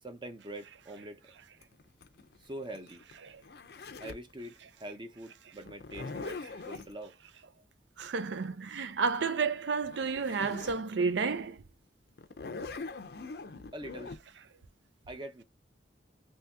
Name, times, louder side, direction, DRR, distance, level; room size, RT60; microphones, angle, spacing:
voice 1, 0.0-1.2 2.4-3.0 4.0-7.2 13.7-14.1 15.1-15.4, right 1 dB, 25° right, 0.6 m, -44 dB
Zipper (clothing), 1.6-4.3 5.7-6.9 9.5-9.6 9.8-10.8 11.3-11.4 12.2-14.2, left 3 dB, 60° left, 0.5 m, -42 dB
voice 2, 8.0-11.6, right 5 dB, 80° right, 0.5 m, -31 dB
2.8 x 2.7 x 3.4 m
head